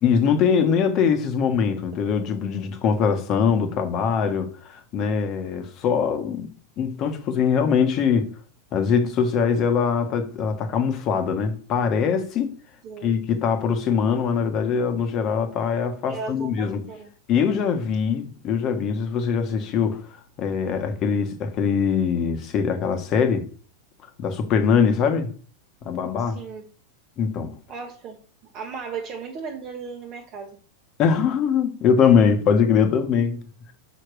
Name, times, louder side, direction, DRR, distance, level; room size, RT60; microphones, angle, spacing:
voice 1, 0.0-6.5 6.8-8.3 8.7-12.5 13.0-16.8 17.3-20.0 20.4-23.4 24.2-25.3 25.8-26.4 27.2-27.5 31.0-33.4, left 6 dB, 35° left, 1.2 m, -22 dB
voice 2, 16.1-17.1 26.2-26.7 27.7-28.2 28.5-30.6, right 5 dB, 30° right, 1.1 m, -36 dB
5.9 x 5.1 x 6.2 m
supercardioid pair, 155°, 0 cm